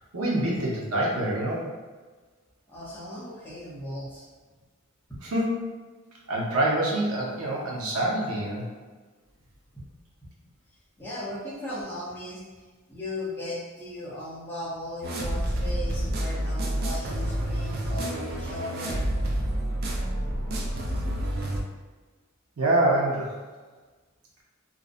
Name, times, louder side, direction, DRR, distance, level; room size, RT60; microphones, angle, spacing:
voice 1, 0.1-1.7 5.3-5.6 6.3-8.7 22.6-23.4, right 1 dB, 90° right, -3 dB, 0.6 m, -25 dB
voice 2, 2.7-4.3 9.7-9.8 10.7-19.1, left 1 dB, 10° left, -8 dB, 0.5 m, -37 dB
sound 1, 15.0-21.6, right 1 dB, 45° right, 0.3 m, -29 dB
2.5 x 2.0 x 2.4 m, 1.3 s
head